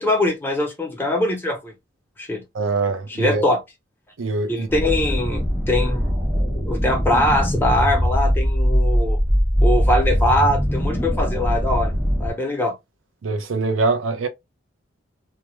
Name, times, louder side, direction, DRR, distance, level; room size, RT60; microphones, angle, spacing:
voice 1, 0.0-1.7 2.2-2.4 3.2-3.6 4.5-6.1 6.7-9.2 9.6-11.9 12.2-12.7, left 1 dB, 10° left, 0.6 m, -22 dB
voice 2, 2.5-3.4 4.2-4.7 13.2-14.3, right 3 dB, 85° right, 0.5 m, -23 dB
sound 1, 4.7-12.3, equal, 15° right, 1.0 m, -21 dB
2.2 x 2.1 x 2.9 m
head